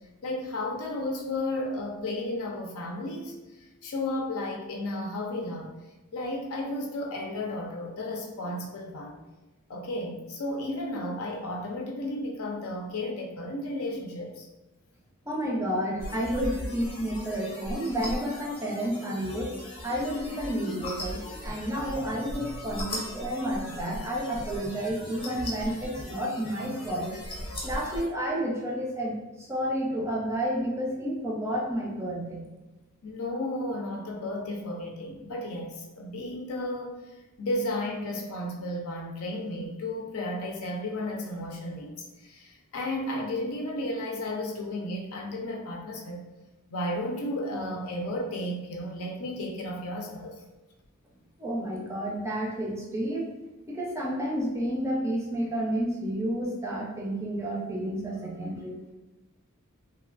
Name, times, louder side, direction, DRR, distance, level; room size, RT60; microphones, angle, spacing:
voice 1, 0.2-3.4 3.8-5.7 6.1-9.2 9.7-14.5 33.0-37.0 37.4-41.9 42.2-46.2 46.7-50.4, left 1 dB, 70° left, 0 dB, 0.5 m, -33 dB
voice 2, 15.3-19.5 19.8-27.2 27.6-32.5 51.4-53.3 53.7-58.7, equal, 10° right, -3 dB, 0.5 m, -30 dB
sound 1, 16.0-28.1, left 1 dB, 25° left, 0.8 m, -38 dB
3.1 x 2.2 x 2.4 m, 1.1 s
head